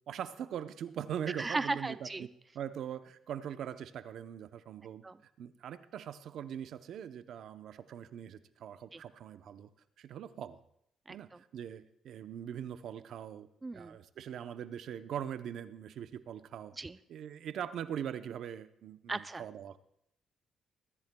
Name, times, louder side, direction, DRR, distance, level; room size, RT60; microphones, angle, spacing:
voice 1, 0.1-2.3 2.5-5.0 5.4-9.7 10.0-10.6 11.1-13.5 13.7-16.7 17.1-19.8, right 9 dB, 75° right, 11 dB, 0.7 m, -41 dB
voice 2, 1.3-2.3 5.0-5.1 8.9-9.0 11.1-11.2 13.6-14.0 16.8-17.0 19.1-19.4, right 3 dB, 25° right, 13 dB, 0.4 m, -36 dB
21.5 x 13.5 x 2.3 m, 0.73 s
cardioid pair, 85°, 0 cm